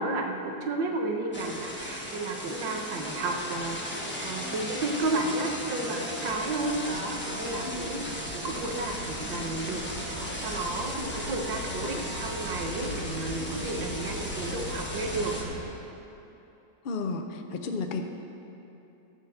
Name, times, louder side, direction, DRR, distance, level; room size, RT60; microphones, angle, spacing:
voice 1, 0.0-15.7, right 2 dB, 80° right, 2 dB, 1.8 m, -32 dB
sound 1, 1.3-15.4, equal, 10° left, 0.9 m, -37 dB
sound 2, 6.1-15.6, left 1 dB, 50° left, 3.3 m, -40 dB
voice 2, 7.6-8.0 16.8-18.0, left 3 dB, 80° left, 5 dB, 0.4 m, -33 dB
13.5 x 5.2 x 7.8 m, 2.9 s
omnidirectional pair, 2.0 m